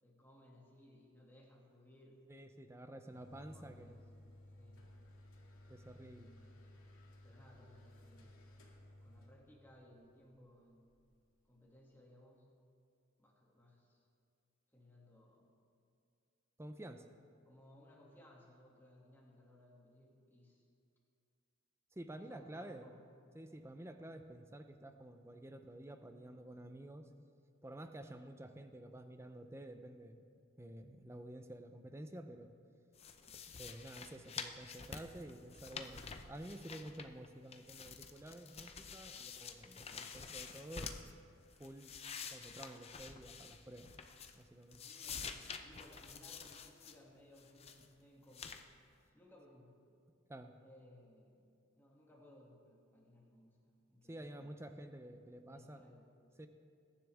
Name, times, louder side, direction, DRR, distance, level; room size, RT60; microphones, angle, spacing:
voice 1, 0.0-2.2 2.9-4.1 4.6-4.8 6.0-6.8 7.2-8.4 9.0-11.0 11.5-12.5 13.2-14.1 14.7-15.5 17.4-20.7 22.1-23.0 26.2-26.4 44.7-48.6 49.1-49.7 50.6-51.5 51.7-54.6 55.5-56.1, left 1 dB, 10° left, -4 dB, 2.2 m, -62 dB
voice 2, 2.3-4.0 5.7-6.3 16.6-17.1 21.9-22.9 23.3-27.1 27.6-30.2 30.6-32.5 33.6-41.0 41.6-42.0 42.3-43.9 44.3-44.8 50.3-50.5 54.1-55.8 56.4-56.5, right 1 dB, 10° right, 8 dB, 0.6 m, -51 dB
sound 1, 3.1-11.8, left 1 dB, 85° left, 2.2 m, -59 dB
sound 2, 33.0-37.3 37.5-41.1 41.5-44.5 44.7-47.0 47.4-47.9 48.3-48.6, left 6 dB, 30° left, 0.6 m, -49 dB
21.5 x 10.5 x 3.5 m, 2.4 s
head